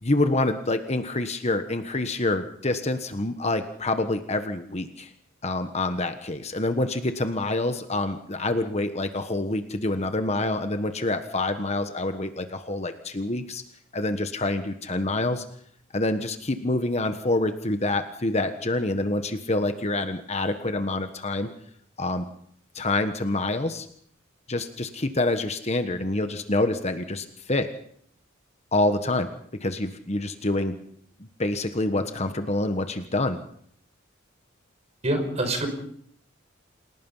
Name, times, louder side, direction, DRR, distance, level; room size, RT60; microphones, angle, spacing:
voice 1, 0.0-5.1 5.4-13.6 13.9-15.4 15.9-21.5 22.0-22.3 22.7-23.9 24.5-27.7 28.7-29.3 29.6-30.8 31.4-33.4, left 2 dB, 35° left, 8 dB, 1.3 m, -26 dB
voice 2, 35.0-35.7, right 1 dB, 35° right, 6 dB, 5.4 m, -25 dB
29.0 x 18.0 x 5.6 m, 0.64 s
head